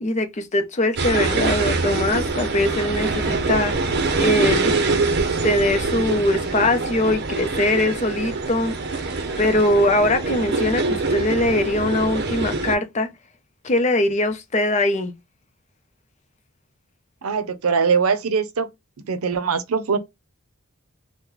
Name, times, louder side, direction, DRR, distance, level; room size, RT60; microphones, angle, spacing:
voice 1, 0.0-3.7 4.2-4.7 5.4-8.7 9.4-13.1 13.6-15.1, left 2 dB, 35° left, 0.6 m, -21 dB
sound 1, 1.0-12.8, right 3 dB, 50° right, 0.6 m, -24 dB
voice 2, 17.2-18.7 19.1-20.0, right 5 dB, 90° right, 0.6 m, -21 dB
3.0 x 2.1 x 3.7 m
head